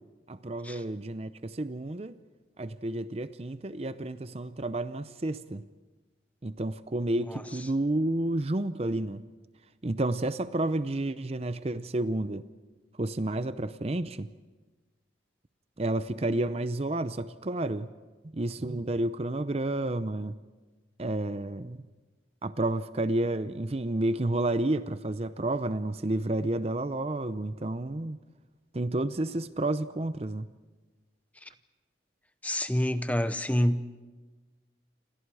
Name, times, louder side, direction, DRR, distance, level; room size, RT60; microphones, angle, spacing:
voice 1, 0.3-2.2 2.6-5.7 6.4-9.2 9.8-12.5 13.0-14.3 15.8-17.9 18.3-20.3 21.0-21.8 22.4-28.2 28.7-30.5, right 1 dB, 35° right, 0.6 m, -30 dB
voice 2, 32.4-34.0, equal, 10° left, 0.8 m, -28 dB
29.0 x 26.5 x 4.9 m
head